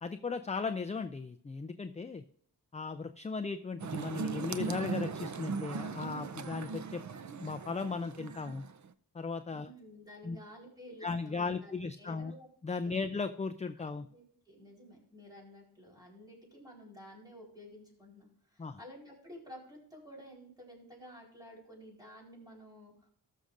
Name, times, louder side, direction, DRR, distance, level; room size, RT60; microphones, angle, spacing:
voice 1, 0.0-2.2 2.7-7.0 7.4-8.6 9.1-9.7 10.2-10.4 11.0-12.3 12.6-14.1 18.6-18.8, left 4 dB, 20° left, 9 dB, 0.4 m, -37 dB
sound 1, 3.8-8.9, right 5 dB, 45° right, 0.6 m, -39 dB
voice 2, 9.5-12.5 12.8-13.1 14.1-23.1, equal, 10° right, -3 dB, 4.3 m, -52 dB
19.0 x 6.5 x 2.5 m, 0.63 s
wide cardioid pair, 150°, 40 cm